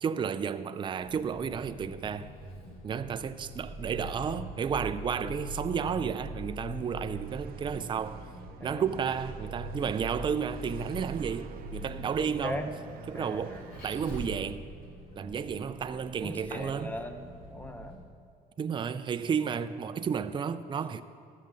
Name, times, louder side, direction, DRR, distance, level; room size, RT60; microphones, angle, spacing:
voice 1, 0.0-2.3 2.8-8.2 8.6-12.6 13.1-14.7 15.2-17.0 18.6-21.0, right 7 dB, 30° right, 0.4 m, -32 dB
Vehicle, 1.0-17.9, equal, 60° left, 3.4 m, -43 dB
sound 1, 5.8-14.5, right 8 dB, 60° right, 0.7 m, -52 dB
voice 2, 12.2-12.7 13.1-13.6 16.2-18.0, left 1 dB, 10° left, 0.9 m, -39 dB
13.5 x 5.7 x 7.4 m
cardioid pair, 110°, 17 cm